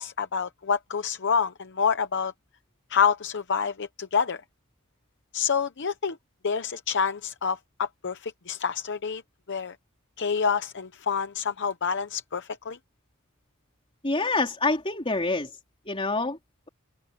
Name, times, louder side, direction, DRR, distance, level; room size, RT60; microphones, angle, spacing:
voice 1, 0.0-2.3 2.9-4.4 5.3-6.2 6.4-9.2 9.5-9.8 10.2-12.8, left 6 dB, 55° left, 0.8 m, -27 dB
voice 2, 14.0-15.5 15.9-16.4, left 3 dB, 25° left, 4.0 m, -26 dB
head